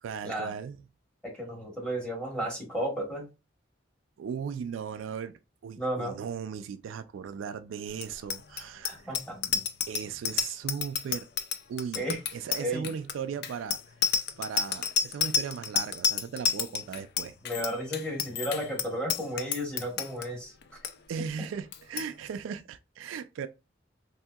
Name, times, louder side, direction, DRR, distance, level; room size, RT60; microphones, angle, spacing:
voice 1, 0.0-0.8 4.2-9.0 9.9-11.3 11.7-12.0 12.3-13.8 14.4-17.3 21.1-23.5, right 7 dB, 85° right, 0.3 m, -37 dB
voice 2, 1.2-3.3 5.8-6.2 8.8-9.6 11.9-12.2 12.6-12.9 17.4-20.5, equal, 5° left, 1.1 m, -33 dB
Bicycle bell, 7.9-20.3 20.6-20.9 21.2-21.5 21.7-22.1, left 6 dB, 55° left, 0.4 m, -30 dB
3.4 x 2.7 x 2.3 m
head